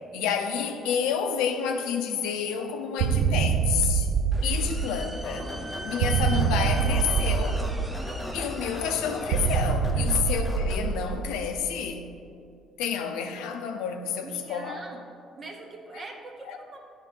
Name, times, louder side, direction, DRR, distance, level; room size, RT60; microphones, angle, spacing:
voice 1, 0.1-4.1 4.4-5.5 5.8-7.6 8.3-12.1 12.8-14.8 15.9-16.0 16.5-16.6, left 7 dB, 90° left, 0.5 m, -29 dB
sound 1, 3.0-5.3 6.0-8.3 9.3-11.6, right 6 dB, 85° right, 0.3 m, -25 dB
sound 2, 4.3-9.6, right 1 dB, 15° right, 0.6 m, -39 dB
sound 3, 5.2-11.1, left 1 dB, 30° left, 1.1 m, -39 dB
voice 2, 14.2-15.0 15.4-16.8, right 2 dB, 40° right, 1.0 m, -43 dB
9.0 x 3.2 x 5.1 m
supercardioid pair, 85°, 0 cm